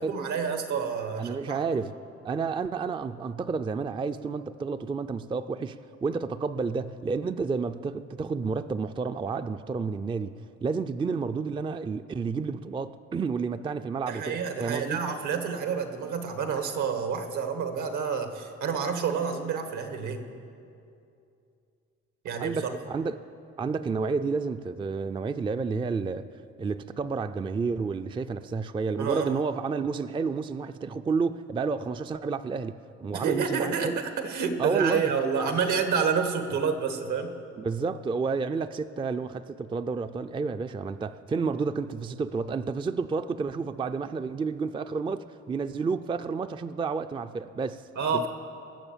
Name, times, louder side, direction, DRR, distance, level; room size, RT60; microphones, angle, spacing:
voice 1, 0.0-1.9 14.1-20.3 22.2-22.7 29.0-29.4 33.1-37.3 48.0-48.3, right 6 dB, 75° right, 7 dB, 1.4 m, -29 dB
voice 2, 1.2-1.9 2.2-15.0 22.4-23.2 23.6-26.3 26.6-32.7 33.0-34.0 34.6-35.1 37.6-47.8 48.1-48.3, right 4 dB, 15° right, 11 dB, 0.3 m, -30 dB
19.0 x 6.8 x 7.2 m, 2.6 s
cardioid pair, 90°, 30 cm